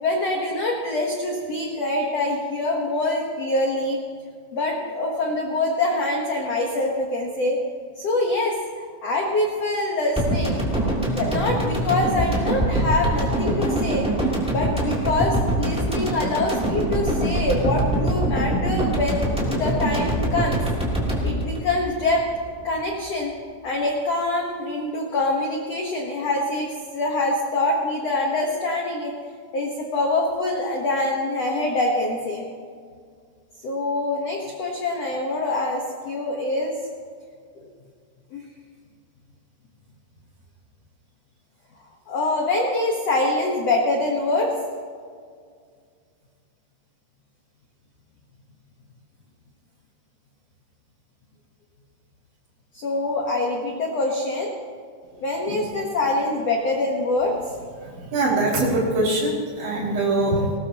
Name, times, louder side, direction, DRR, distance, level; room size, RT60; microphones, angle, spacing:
voice 1, 0.0-4.0 4.5-7.6 7.9-8.6 9.0-10.6 11.0-14.0 14.5-20.6 21.2-22.2 22.6-23.3 23.6-29.1 29.5-32.4 33.6-36.7 37.6-37.7 38.3-38.4 42.1-44.5 52.7-54.5 55.2-57.4, left 2 dB, 90° left, 0 dB, 1.4 m, -24 dB
sound 1, 10.1-22.5 22.8-22.9, right 1 dB, ahead, 1.8 m, -24 dB
voice 2, 57.8-60.5, right 2 dB, 75° right, -6 dB, 5.1 m, -23 dB
19.5 x 19.0 x 3.0 m, 2.1 s
omnidirectional pair, 5.2 m